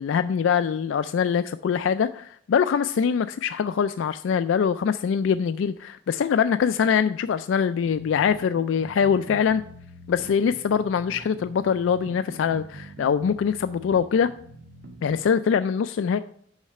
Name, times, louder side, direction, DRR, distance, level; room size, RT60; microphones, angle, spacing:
voice 1, 0.0-9.6 10.1-14.3 15.0-16.2, left 7 dB, 80° left, 11 dB, 0.3 m, -23 dB
sound 1, 7.8-15.2, right 1 dB, 60° right, 1.2 m, -44 dB
6.4 x 5.7 x 6.3 m, 0.64 s
head